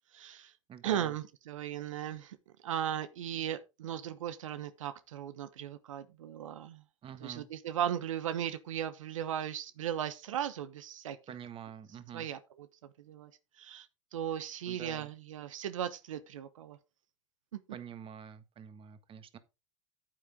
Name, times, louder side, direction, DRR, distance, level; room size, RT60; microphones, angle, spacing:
voice 1, 0.1-0.5 0.8-6.8 7.2-11.2 12.1-12.7 13.0-13.3 13.6-13.9 14.1-16.8 17.5-17.6, right 10 dB, 85° right, 0.9 m, -37 dB
voice 2, 0.7-1.1 7.0-7.5 11.3-12.3 14.7-15.1 17.7-19.4, right 8 dB, 35° right, 1.5 m, -46 dB
9.1 x 8.7 x 3.7 m
hypercardioid pair, 100°, 16 cm